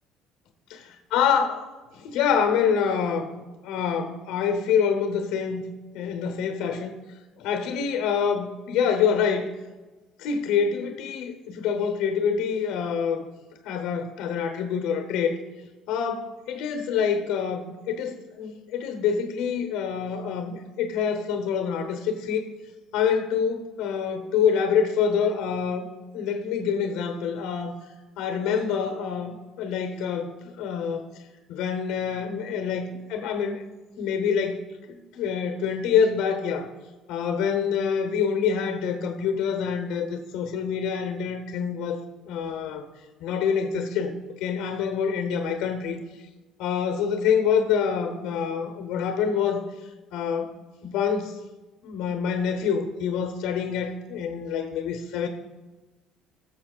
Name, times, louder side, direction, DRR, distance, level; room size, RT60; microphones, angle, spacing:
voice 1, 1.1-1.7 1.9-5.6 5.9-6.9 7.4-9.5 10.2-13.2 13.6-15.3 15.9-22.5 22.9-27.7 28.2-31.0 31.5-33.6 34.0-36.7 37.1-42.0 42.3-42.8 43.2-44.1 44.4-46.0 46.6-49.6 50.1-50.5 50.8-51.4 51.8-55.3, left 7 dB, 75° left, 6 dB, 0.9 m, -26 dB
18.0 x 7.0 x 2.4 m, 1.2 s
cardioid pair, 165°, 0 cm